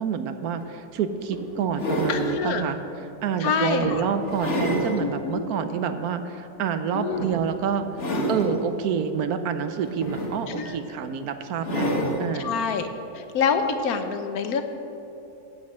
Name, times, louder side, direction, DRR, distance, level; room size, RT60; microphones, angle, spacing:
voice 1, 0.0-2.8 3.2-7.9 8.3-11.9 12.2-12.5, right 7 dB, 75° right, 9 dB, 1.2 m, -27 dB
sound 1, 0.6-0.7 1.3-2.4 3.0-3.2 3.8-5.0 5.5-5.6 7.1-7.5 7.9-8.6 9.8-10.7 11.6-12.3 13.6-13.7, equal, 50° left, 1.6 m, -28 dB
voice 2, 2.1-2.6 3.4-4.0 5.0-5.4 6.9-7.3 10.5-10.8 12.3-12.9 13.1-14.6, left 6 dB, 75° left, 8 dB, 1.2 m, -26 dB
9.5 x 7.9 x 7.4 m, 2.9 s
omnidirectional pair, 1.6 m